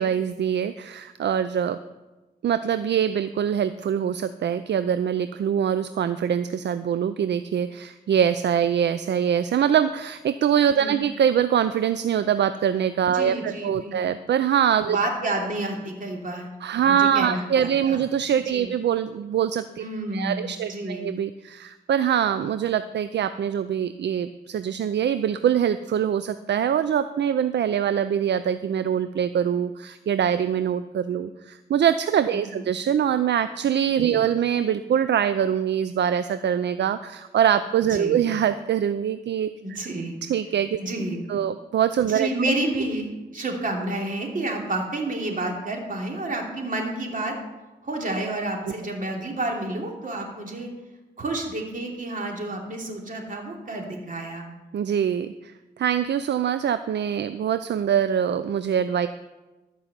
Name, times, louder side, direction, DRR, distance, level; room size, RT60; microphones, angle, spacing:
voice 1, 0.0-1.8 2.4-15.0 16.6-19.8 20.1-39.5 40.3-40.8 41.3-42.3 48.7-48.8 54.7-59.1, right 9 dB, 70° right, 12 dB, 0.5 m, -23 dB
voice 2, 10.7-11.0 13.1-14.1 14.9-18.0 18.5-18.7 19.8-21.1 32.3-32.6 34.0-34.2 37.9-38.2 39.6-40.2 40.8-41.4 42.1-47.4 47.8-50.7 51.2-54.5, right 2 dB, 45° right, 1 dB, 3.0 m, -30 dB
13.5 x 5.6 x 8.2 m, 1.1 s
cardioid pair, 65°, 19 cm